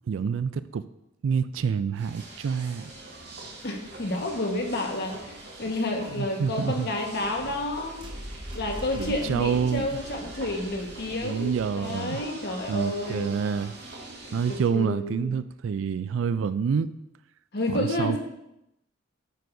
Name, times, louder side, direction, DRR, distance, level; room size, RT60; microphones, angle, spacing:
voice 1, 0.1-0.8 1.2-2.9 6.1-6.9 9.0-9.8 11.2-12.2 12.7-13.8 14.3-16.9 17.7-18.2, right 6 dB, 80° right, 14 dB, 0.3 m, -27 dB
sound 1, 1.9-14.6, right 2 dB, 60° right, 1.8 m, -44 dB
voice 2, 3.6-8.0 8.5-13.4 14.5-15.3 17.5-18.2, left 1 dB, 55° left, 1 dB, 1.4 m, -30 dB
sound 2, 7.1-12.2, equal, 25° right, 0.9 m, -42 dB
9.1 x 8.2 x 2.6 m, 0.86 s
head